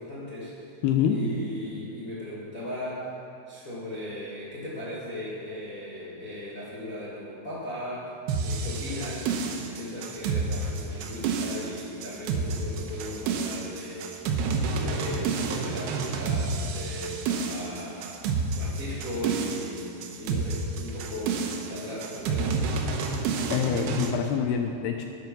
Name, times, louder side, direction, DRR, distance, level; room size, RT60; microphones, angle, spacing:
voice 1, 0.0-0.7 1.1-3.1 3.5-8.1 8.4-14.3 14.7-22.6, left 1 dB, 50° left, -8 dB, 0.9 m, -37 dB
voice 2, 0.8-1.2 22.9-23.1 23.5-25.0, left 8 dB, 85° left, 4 dB, 2.3 m, -26 dB
sound 1, 8.3-24.1, right 4 dB, 75° right, 2.6 m, -29 dB
11.5 x 9.4 x 6.0 m, 2.6 s
omnidirectional pair, 5.3 m